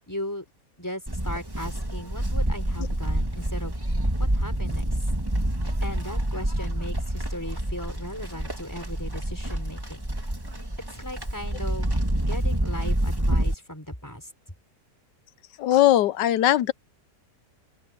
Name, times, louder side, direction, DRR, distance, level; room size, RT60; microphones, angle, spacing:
voice 1, 0.1-0.4 0.8-3.7 4.2-4.9 5.8-10.0 10.9-11.9 12.3-14.3, equal, 10° left, 4.7 m, -37 dB
Livestock farm animals working animals, 1.1-13.5, right 1 dB, 15° right, 2.3 m, -27 dB
voice 2, 15.6-16.7, left 13 dB, 80° left, 1.3 m, -19 dB
open air
omnidirectional pair, 1.9 m